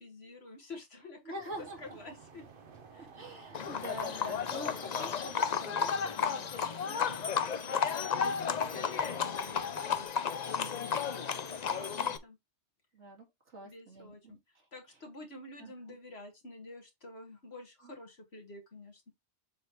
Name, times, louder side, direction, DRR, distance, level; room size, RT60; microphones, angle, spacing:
voice 1, 0.0-1.3 1.8-2.4 2.9-3.1 8.7-12.4 13.6-14.4 14.7-19.1, left 2 dB, 65° left, 2.2 m, -49 dB
voice 2, 1.2-1.8 3.0-7.3 7.6-7.8 8.7-8.9 11.9-12.2 12.9-14.7 15.6-16.0 17.8-17.9, right 1 dB, 80° right, 2.6 m, -47 dB
sound 1, 1.5-10.1, right 5 dB, 50° right, 1.2 m, -53 dB
Livestock farm animals working animals, 3.5-12.2, left 7 dB, 45° left, 0.6 m, -33 dB
7.4 x 3.2 x 4.6 m
omnidirectional pair, 1.2 m